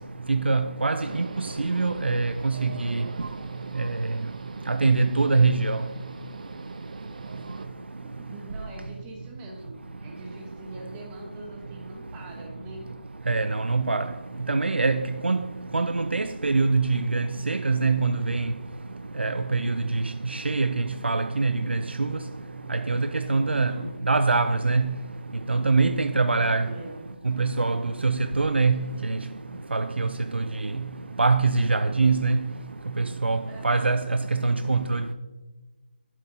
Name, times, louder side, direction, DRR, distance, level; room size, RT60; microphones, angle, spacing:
voice 1, 0.3-3.0 4.7-5.8 13.3-14.1 14.5-15.4 15.7-18.5 19.2-19.8 20.3-22.1 22.7-23.7 24.1-24.9 25.5-26.6 27.3-28.8 29.1-29.2 29.7-30.4 31.2-32.4 33.0-33.4 33.6-35.1, right 3 dB, 90° right, 0.4 m, -23 dB
sound 1, 1.0-7.7, right 4 dB, 45° right, 0.6 m, -42 dB
voice 2, 8.0-12.9 23.5-23.9 26.6-27.0 33.5-33.9, right 1 dB, 15° right, 1.1 m, -42 dB
9.8 x 7.4 x 2.8 m
figure-of-eight pair, 160°, 6 cm